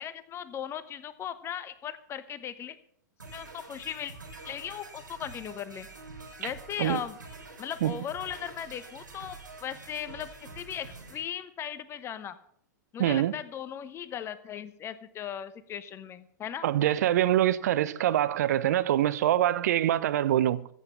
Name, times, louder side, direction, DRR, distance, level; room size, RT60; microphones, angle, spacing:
voice 1, 0.0-2.8 3.3-4.1 4.4-5.9 6.4-7.2 7.6-10.3 10.5-12.4 12.9-16.7, left 9 dB, 25° left, 0.9 m, -38 dB
sound 1, 3.2-11.2, right 3 dB, 85° right, 3.4 m, -47 dB
voice 2, 13.0-13.3 16.6-20.7, right 12 dB, 60° right, 0.8 m, -24 dB
14.5 x 8.3 x 6.8 m
figure-of-eight pair, 100°, 10 cm